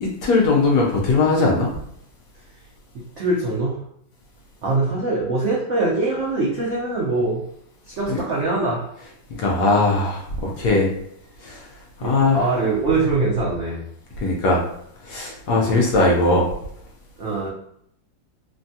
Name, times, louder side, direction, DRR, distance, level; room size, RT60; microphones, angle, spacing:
voice 1, 0.0-1.7 8.1-8.2 9.4-10.9 11.4-11.6 12.0-12.5 14.2-14.6 15.0-16.5, left 3 dB, 70° left, -2 dB, 1.1 m, -19 dB
voice 2, 3.2-3.8 4.6-7.4 7.9-8.9 12.0-13.8 15.5-15.8 17.2-17.5, right 2 dB, 90° right, -6 dB, 0.6 m, -23 dB
3.3 x 2.2 x 2.6 m, 0.71 s
omnidirectional pair, 2.1 m